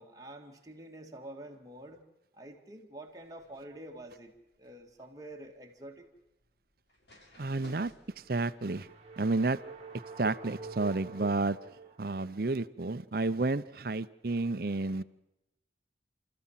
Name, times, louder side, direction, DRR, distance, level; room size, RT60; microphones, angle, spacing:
voice 1, 0.0-2.0 2.3-4.3 4.6-6.0, right 1 dB, 20° right, 1 dB, 2.2 m, -47 dB
sound 1, 3.1-10.2, equal, 75° left, 6.7 m, -62 dB
voice 2, 7.4-7.9 8.3-8.9 9.2-9.6 10.2-11.6 12.0-15.0, right 3 dB, 55° right, 14 dB, 0.7 m, -31 dB
sound 2, 8.1-12.4, right 4 dB, 35° right, 1.8 m, -47 dB
29.5 x 14.0 x 7.4 m, 0.90 s
head